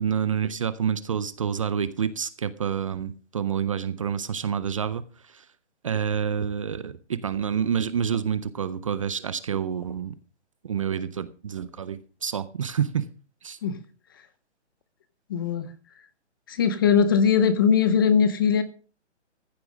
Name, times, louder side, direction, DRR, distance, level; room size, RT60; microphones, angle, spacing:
voice 1, 0.0-5.0 5.3-5.4 5.8-10.1 10.6-13.1 13.4-13.6, right 8 dB, 30° right, 0.5 m, -28 dB
voice 2, 15.3-15.7 16.5-18.6, left 7 dB, 20° left, 0.6 m, -20 dB
14.5 x 6.9 x 6.2 m
hypercardioid pair, 155°, 35 cm